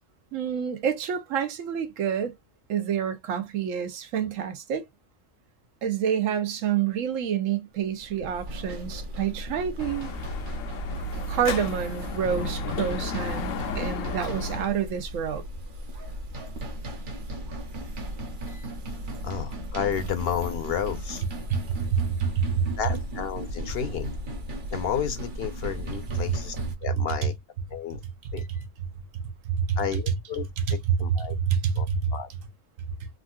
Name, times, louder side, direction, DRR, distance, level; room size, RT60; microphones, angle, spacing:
voice 1, 0.3-2.3 2.7-4.8 5.8-10.1 11.3-13.5 13.7-15.4 21.5-22.7 28.2-28.3 29.4-29.8 30.9-32.1, right 8 dB, 90° right, 1.1 m, -27 dB
sound 1, 7.9-26.7, equal, 50° right, 0.7 m, -36 dB
Dog / Motorcycle, 9.8-14.8, left 2 dB, 85° left, 1.0 m, -33 dB
voice 2, 19.2-21.2 22.8-24.2 24.7-26.5 26.8-27.3 27.7-28.0 28.3-28.6 29.8-31.4 31.8-32.3, left 8 dB, 60° left, 0.7 m, -32 dB
3.6 x 2.4 x 2.2 m
omnidirectional pair, 1.3 m